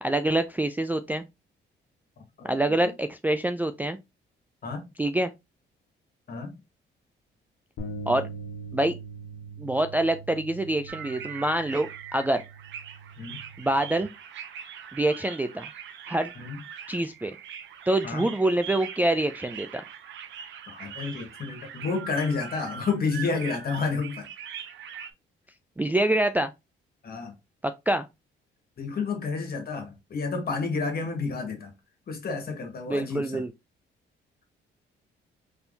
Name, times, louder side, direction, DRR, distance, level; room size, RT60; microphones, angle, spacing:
voice 1, 0.0-1.2 2.4-4.0 5.0-5.3 8.1-8.3 8.7-8.9 9.6-12.4 13.6-14.1 14.9-15.7 16.1-16.3 16.9-17.4 17.9-19.8 25.8-26.5 27.6-28.1 32.9-33.5, right 1 dB, 10° right, 0.3 m, -26 dB
voice 2, 2.4-2.9 4.6-4.8 6.3-6.5 13.2-13.4 16.4-16.6 18.0-18.3 20.7-24.2 24.9-25.0 27.0-27.3 28.8-31.7 32.1-33.4, left 4 dB, 50° left, 1.7 m, -30 dB
sound 1, 7.8-14.0, right 3 dB, 80° left, 1.2 m, -42 dB
sound 2, 10.9-25.1, right 8 dB, 70° right, 0.7 m, -42 dB
4.3 x 3.4 x 2.7 m
cardioid pair, 90°, 20 cm